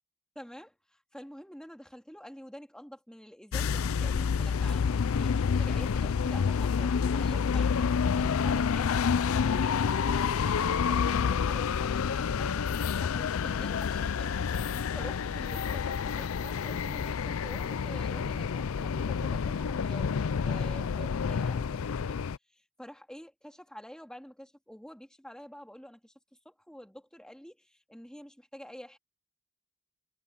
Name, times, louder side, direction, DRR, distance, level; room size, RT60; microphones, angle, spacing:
voice 1, 0.4-0.7 1.1-9.1 13.0-26.1 26.4-29.0, equal, 5° left, 2.2 m, -48 dB
sound 1, 3.5-22.4, left 6 dB, 80° left, 0.5 m, -29 dB
head